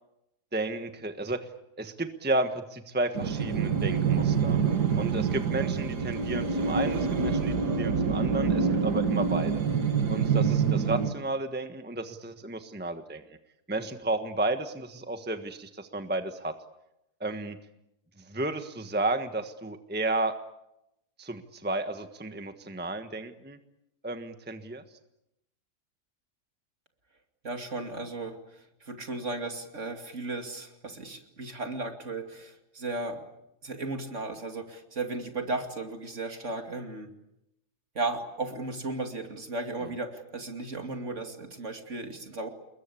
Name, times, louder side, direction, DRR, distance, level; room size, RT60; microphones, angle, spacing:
voice 1, 0.5-1.5 1.8-4.6 5.0-9.6 10.1-13.2 13.7-16.5 17.2-17.6 18.2-20.3 21.2-23.6 24.0-24.8, right 2 dB, 5° right, 8 dB, 1.3 m, -32 dB
sound 1, 3.1-11.1, right 6 dB, 90° right, 2.4 m, -26 dB
voice 2, 27.4-33.2 33.6-37.1 37.9-42.5, right 2 dB, 45° right, 5 dB, 2.9 m, -35 dB
28.5 x 22.0 x 8.5 m, 0.85 s
omnidirectional pair, 1.7 m